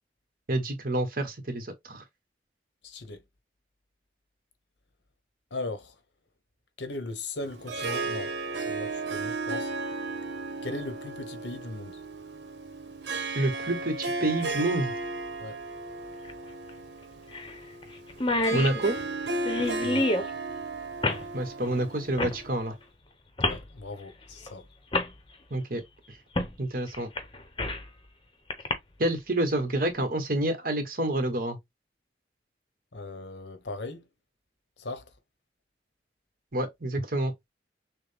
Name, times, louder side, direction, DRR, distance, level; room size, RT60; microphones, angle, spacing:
voice 1, 0.5-2.0 13.3-14.9 18.5-19.0 21.3-22.7 25.5-25.8 26.6-27.1 29.0-31.6 36.5-37.3, right 1 dB, 50° right, 1.2 m, -28 dB
voice 2, 2.8-3.2 5.5-6.0 6.8-9.7 10.6-12.0 15.4-15.6 19.8-20.1 23.4-24.7 32.9-34.0 34.8-35.1, left 2 dB, 85° left, 1.0 m, -38 dB
Harp, 7.4-22.7, right 3 dB, 80° right, 1.0 m, -35 dB
sound 1, 14.4-14.5 16.3-16.4 16.7-16.8 17.3-17.5 17.8-17.9 18.1-20.3 21.0-21.3 22.2-22.4 23.4-23.6 24.5-24.6 24.9-25.1 26.4-26.5 26.9-27.9 28.5-28.7, left 2 dB, 25° left, 0.8 m, -28 dB
6.3 x 2.1 x 3.4 m
head